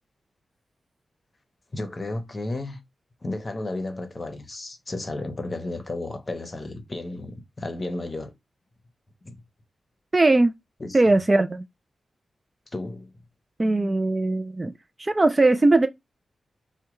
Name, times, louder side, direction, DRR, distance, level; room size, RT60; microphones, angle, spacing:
voice 1, 1.7-2.8 3.2-8.3 9.2-9.3 10.8-11.2 12.7-13.1, left 2 dB, 30° left, 0.7 m, -33 dB
voice 2, 10.1-10.5 10.9-11.6 13.6-14.7 15.0-15.9, right 2 dB, 25° right, 0.3 m, -19 dB
4.7 x 2.2 x 3.0 m
wide cardioid pair, 125°, 0 cm